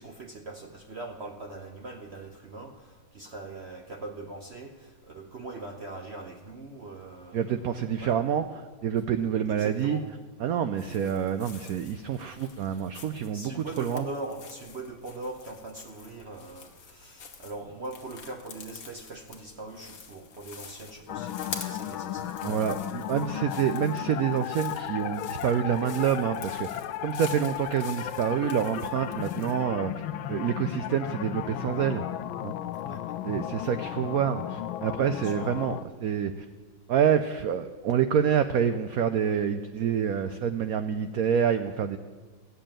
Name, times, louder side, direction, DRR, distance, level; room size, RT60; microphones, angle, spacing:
voice 1, 0.0-2.7 3.1-7.6 8.0-8.2 9.5-10.0 13.3-22.4 32.8-33.2 35.2-35.5, right 2 dB, 50° right, 3 dB, 0.8 m, -41 dB
voice 2, 7.3-8.5 8.8-10.0 10.4-14.1 22.4-26.7 27.0-29.9 30.3-32.0 32.4-32.5 33.2-36.4 36.9-42.0, right 8 dB, 90° right, 10 dB, 0.7 m, -27 dB
sound 1, 10.7-29.6, left 5 dB, 50° left, 1.5 m, -47 dB
sound 2, 21.1-35.8, left 12 dB, 90° left, 1.4 m, -35 dB
14.5 x 7.0 x 8.9 m, 1.4 s
omnidirectional pair, 2.1 m